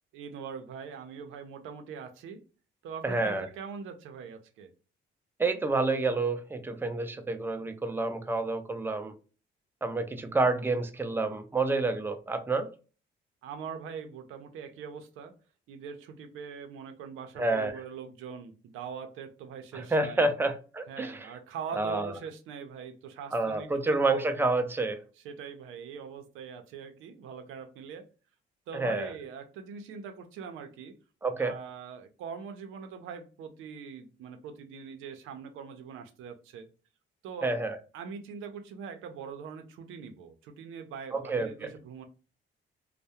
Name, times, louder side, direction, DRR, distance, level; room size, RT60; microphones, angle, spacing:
voice 1, 0.1-2.4 2.8-4.7 13.4-15.3 15.7-20.3 20.9-24.0 25.2-28.0 28.7-30.9 31.4-36.7 37.2-37.5 37.9-42.1, right 6 dB, 90° right, 0.5 m, -42 dB
voice 2, 3.0-3.5 5.4-9.1 9.8-12.7 17.4-17.8 19.7-21.3 21.7-22.1 23.3-25.0 28.7-29.1 31.2-31.6 37.4-37.8 41.1-41.7, right 3 dB, 10° right, 0.4 m, -29 dB
2.2 x 2.0 x 2.8 m
cardioid pair, 90°, 20 cm